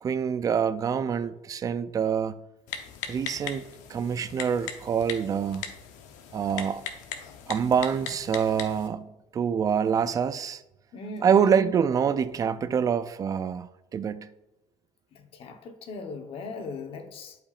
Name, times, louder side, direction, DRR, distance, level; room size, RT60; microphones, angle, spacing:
voice 1, 0.0-2.4 3.1-3.6 3.9-5.6 6.3-6.8 7.5-10.6 11.2-14.3, right 7 dB, 30° right, 0.3 m, -26 dB
Typing, 2.7-8.9, left 8 dB, 90° left, 0.8 m, -39 dB
voice 2, 10.9-11.7 15.1-17.4, left 2 dB, 50° left, 0.9 m, -38 dB
11.5 x 5.0 x 2.4 m
cardioid pair, 135°, 12 cm